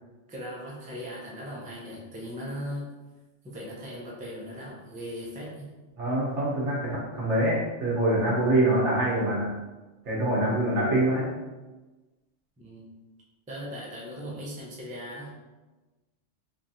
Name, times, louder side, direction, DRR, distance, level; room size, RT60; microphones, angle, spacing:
voice 1, 0.3-2.9 3.4-5.7 12.6-12.9 13.5-15.3, equal, 15° right, -5 dB, 0.3 m, -38 dB
voice 2, 6.0-9.5 10.1-11.3, right 1 dB, 75° right, -6 dB, 1.3 m, -25 dB
3.1 x 2.4 x 2.6 m, 1.2 s
omnidirectional pair, 1.2 m